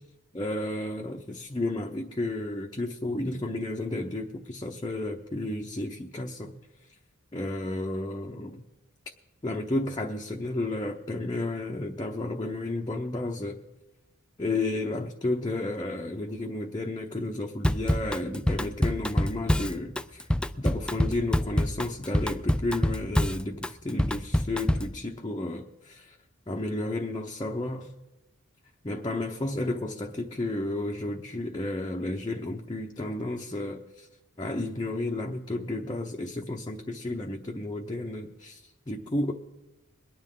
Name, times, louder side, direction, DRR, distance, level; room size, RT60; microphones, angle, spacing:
voice 1, 0.3-6.5 7.3-8.6 9.4-13.6 14.4-20.3 20.6-26.2 26.5-27.9 28.8-34.1 34.4-39.3, left 2 dB, 20° left, 0 dB, 0.8 m, -32 dB
Drum kit / Drum, 17.6-25.0, equal, 5° left, 0.3 m, -26 dB
22.5 x 9.9 x 3.7 m, 1.1 s
head